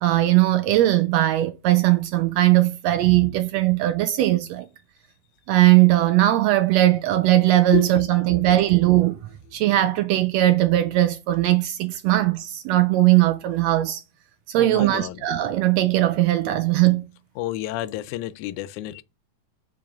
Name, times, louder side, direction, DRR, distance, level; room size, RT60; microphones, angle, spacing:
voice 1, 0.0-4.7 5.5-9.2 9.5-14.0 14.5-17.0, right 15 dB, 80° right, 1.6 m, -19 dB
voice 2, 14.6-15.2 17.4-19.0, left 14 dB, 85° left, 2.0 m, -30 dB
5.4 x 4.8 x 5.8 m
omnidirectional pair, 3.4 m